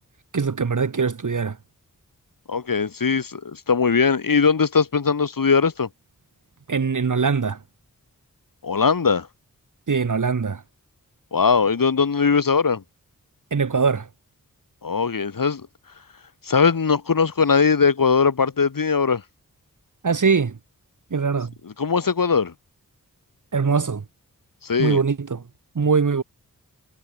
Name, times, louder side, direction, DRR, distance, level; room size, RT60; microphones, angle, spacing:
voice 1, 0.3-1.6 6.7-7.6 9.9-10.6 13.5-14.1 20.0-20.6 21.1-21.5 23.5-24.0 24.8-25.4 25.8-26.2, right 5 dB, 60° right, 1.9 m, -22 dB
voice 2, 2.5-5.9 8.6-9.3 11.3-12.8 14.8-15.6 16.5-19.2 21.8-22.5 24.6-25.0, left 5 dB, 75° left, 2.7 m, -20 dB
wide cardioid pair, 90°, 34 cm